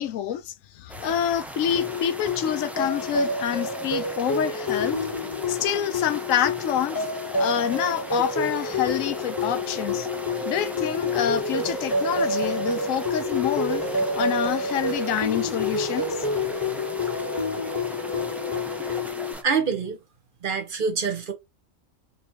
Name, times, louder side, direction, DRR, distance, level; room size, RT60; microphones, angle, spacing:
voice 1, 0.0-5.0 5.5-7.0 7.3-10.1 10.4-13.9 14.1-16.2, left 9 dB, 85° left, 1.0 m, -27 dB
sound 1, 0.9-19.4, right 1 dB, ahead, 0.4 m, -39 dB
sound 2, 1.7-19.3, left 2 dB, 20° left, 0.8 m, -28 dB
sound 3, 8.4-19.0, right 1 dB, 75° right, 1.5 m, -39 dB
voice 2, 19.4-20.0 20.4-21.3, right 5 dB, 45° right, 1.1 m, -25 dB
4.3 x 3.0 x 2.9 m
omnidirectional pair, 1.3 m